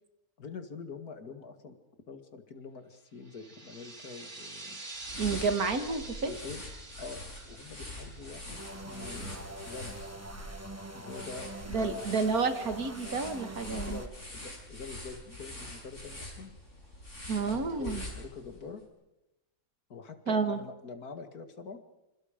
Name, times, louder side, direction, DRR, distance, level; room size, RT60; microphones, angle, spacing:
voice 1, 0.4-1.8 2.1-4.8 6.2-6.6 7.0-10.1 10.9-12.2 13.8-16.5 17.4-18.8 19.9-21.8, left 5 dB, 80° left, 7 dB, 2.5 m, -45 dB
sound 1, 3.2-9.5, right 2 dB, 30° right, 3.2 m, -46 dB
sound 2, 4.9-18.6, left 1 dB, 50° left, 6.8 m, -44 dB
voice 2, 5.2-6.3 11.7-14.0 17.3-18.0 20.3-20.6, right 4 dB, 75° right, 8 dB, 2.2 m, -30 dB
sound 3, 8.5-14.1, right 1 dB, 10° right, 1.3 m, -44 dB
27.0 x 27.0 x 5.1 m, 0.94 s
omnidirectional pair, 1.6 m